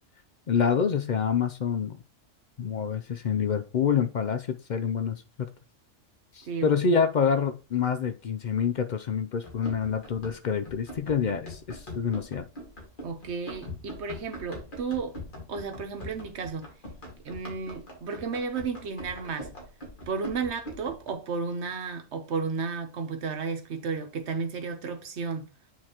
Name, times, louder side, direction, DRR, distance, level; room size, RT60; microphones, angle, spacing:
voice 1, 0.5-2.0 2.6-5.2 6.3-12.5, left 6 dB, 60° left, 0.5 m, -27 dB
voice 2, 6.4-6.9 13.0-15.1 15.5-16.7 17.2-19.5 20.1-25.5, right 5 dB, 60° right, 1.2 m, -33 dB
Run, 9.4-21.1, left 1 dB, 40° left, 1.9 m, -43 dB
8.6 x 3.9 x 2.9 m
omnidirectional pair, 1.3 m